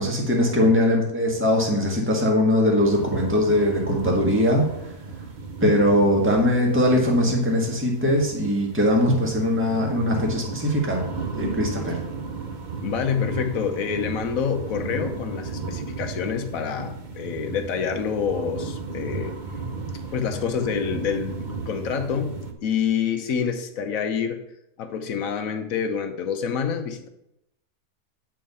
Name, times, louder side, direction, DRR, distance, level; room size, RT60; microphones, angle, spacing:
voice 1, 0.0-4.9 5.6-11.0 11.3-12.0, left 1 dB, 10° right, -1 dB, 1.4 m, -21 dB
sound 1, 2.8-22.5, right 3 dB, 40° right, 0.7 m, -34 dB
voice 2, 12.8-19.4 20.1-24.4 24.8-27.1, left 7 dB, 60° left, 5 dB, 1.2 m, -27 dB
9.0 x 4.6 x 5.4 m, 0.81 s
omnidirectional pair, 1.8 m